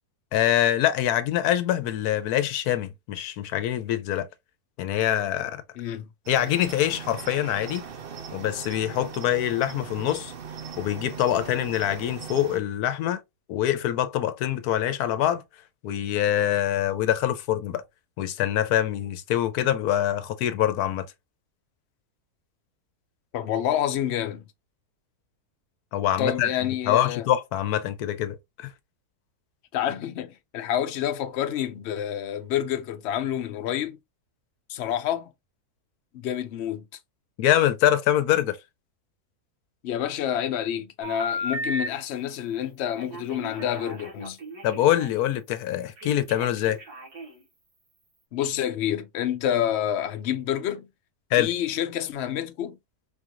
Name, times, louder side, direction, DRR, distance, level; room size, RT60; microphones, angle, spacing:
voice 1, 0.3-4.3 4.8-5.6 6.3-7.8 8.3-10.3 10.8-13.2 13.5-15.4 15.8-17.8 18.2-21.1 25.9-26.5 26.9-28.7 37.4-38.6 44.6-46.8 51.3-51.5, left 12 dB, 85° left, 1.1 m, -24 dB
voice 2, 5.8-6.1 23.3-24.4 26.2-27.3 29.7-34.0 34.7-35.3 36.1-36.8 39.8-44.4 48.3-50.9 51.3-52.8, left 10 dB, 60° left, 0.7 m, -28 dB
Cricket, 6.3-12.6, right 6 dB, 55° right, 0.6 m, -39 dB
Telephone, 41.0-41.9 43.0-45.1 46.0-47.4, equal, 80° right, 2.1 m, -35 dB
4.6 x 2.5 x 2.8 m
omnidirectional pair, 1.6 m